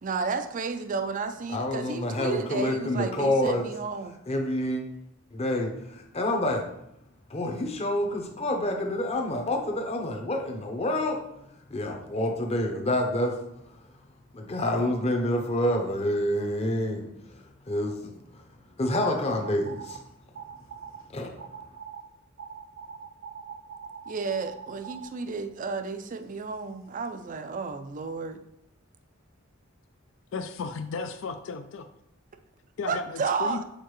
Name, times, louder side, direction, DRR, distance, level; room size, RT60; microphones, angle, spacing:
voice 1, 0.0-4.2 24.1-28.4 32.9-33.6, right 4 dB, 40° right, 9 dB, 0.4 m, -32 dB
voice 2, 1.5-3.7 4.3-4.8 5.3-6.7 7.3-11.3 11.7-13.4 14.3-17.1 17.7-18.1 18.8-20.0 21.1-21.3, left 1 dB, 30° left, 3 dB, 0.8 m, -27 dB
sound 1, 19.0-20.0 20.3-21.0 21.4-22.0 22.4-25.1, right 7 dB, 80° right, 0.6 m, -42 dB
voice 3, 30.3-31.9 32.8-33.6, left 4 dB, 65° left, 8 dB, 0.4 m, -34 dB
6.5 x 4.6 x 3.1 m, 0.79 s
head